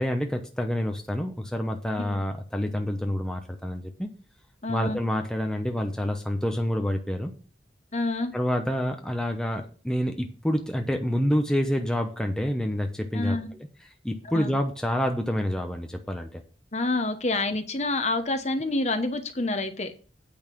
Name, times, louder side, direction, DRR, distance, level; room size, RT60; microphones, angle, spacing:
voice 1, 0.0-4.1 4.7-7.3 8.3-13.4 14.0-16.4, equal, 5° left, 4 dB, 0.8 m, -28 dB
voice 2, 4.6-5.0 7.9-8.3 13.1-13.5 14.2-14.5 16.7-19.9, left 2 dB, 35° left, 8 dB, 1.0 m, -28 dB
8.8 x 5.5 x 6.0 m, 0.39 s
head